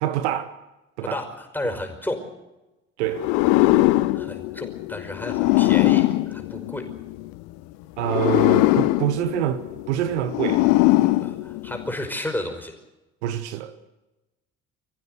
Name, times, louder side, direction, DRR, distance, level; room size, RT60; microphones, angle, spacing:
voice 1, 0.0-0.5 1.0-1.2 1.6-1.8 3.0-3.3 8.0-9.6 9.9-11.1 13.2-13.7, right 12 dB, 70° right, 1.1 m, -26 dB
voice 2, 1.0-2.2 4.1-6.8 11.2-12.7, left 1 dB, 5° left, 5.4 m, -32 dB
sound 1, 3.1-7.3 8.0-11.9, left 18 dB, 60° left, 0.9 m, -21 dB
25.5 x 15.0 x 8.0 m
figure-of-eight pair, 55°, 35 cm